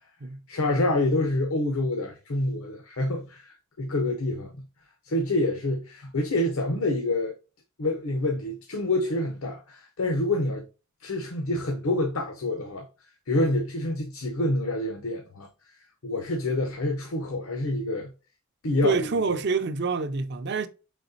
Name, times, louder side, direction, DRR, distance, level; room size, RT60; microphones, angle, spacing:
voice 1, 0.5-4.7 5.0-7.3 7.8-10.6 11.0-12.9 13.3-15.5 16.0-18.1 18.6-19.4, left 1 dB, 80° left, 0.8 m, -27 dB
voice 2, 18.8-20.7, right 4 dB, 50° right, 0.5 m, -26 dB
4.9 x 4.1 x 2.7 m
head